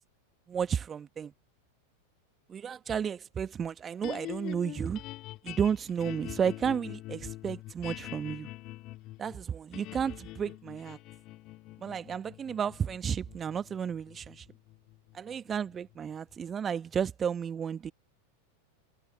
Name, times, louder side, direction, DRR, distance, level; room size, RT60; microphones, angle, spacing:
voice 1, 0.5-1.3 2.5-5.0 5.4-8.5 9.2-11.0 11.8-14.5 15.1-17.9, right 7 dB, 20° right, 1.3 m, -32 dB
sound 1, 4.0-16.3, left 17 dB, 35° left, 2.7 m, -45 dB
figure-of-eight pair, 90°, 0 cm